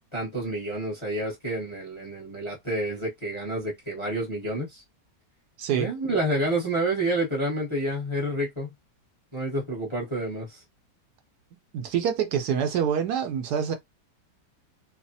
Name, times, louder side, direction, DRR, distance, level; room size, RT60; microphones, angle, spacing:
voice 1, 0.1-4.8 5.7-8.7 9.3-10.6, right 1 dB, 20° left, 0.8 m, -29 dB
voice 2, 5.6-5.9 11.7-13.7, right 8 dB, 75° right, 1.1 m, -26 dB
3.1 x 2.0 x 2.6 m
omnidirectional pair, 1.9 m